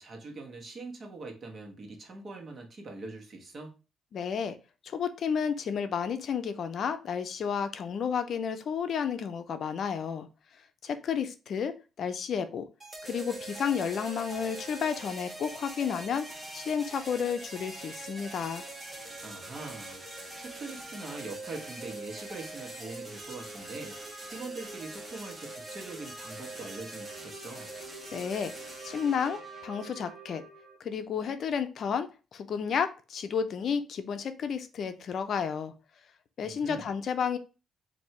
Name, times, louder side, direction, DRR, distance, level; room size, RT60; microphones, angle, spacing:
voice 1, 0.0-3.8 19.2-20.0 20.4-24.0 24.3-27.7 36.4-36.9, right 3 dB, 45° right, 2 dB, 1.2 m, -43 dB
voice 2, 4.1-4.6 4.8-10.3 10.8-12.7 13.0-18.6 28.1-28.5 28.8-30.4 30.8-35.7 36.4-37.4, left 7 dB, 60° left, 9 dB, 0.5 m, -32 dB
sound 1, 12.8-30.8, right 2 dB, 15° right, 1.3 m, -43 dB
4.4 x 2.7 x 3.2 m, 0.31 s
cardioid pair, 90°, 0 cm